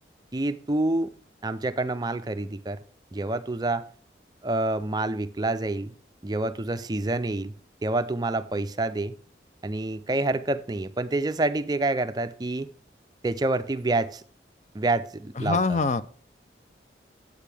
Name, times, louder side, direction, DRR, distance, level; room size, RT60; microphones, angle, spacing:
voice 1, 0.3-1.1 1.4-2.8 3.1-3.8 4.4-5.9 6.2-7.5 7.8-9.1 9.6-12.7 13.2-14.2 14.7-15.8, right 2 dB, 25° right, 11 dB, 0.4 m, -27 dB
voice 2, 15.4-16.0, left 4 dB, 40° left, 13 dB, 0.4 m, -24 dB
10.5 x 8.3 x 3.4 m, 0.43 s
head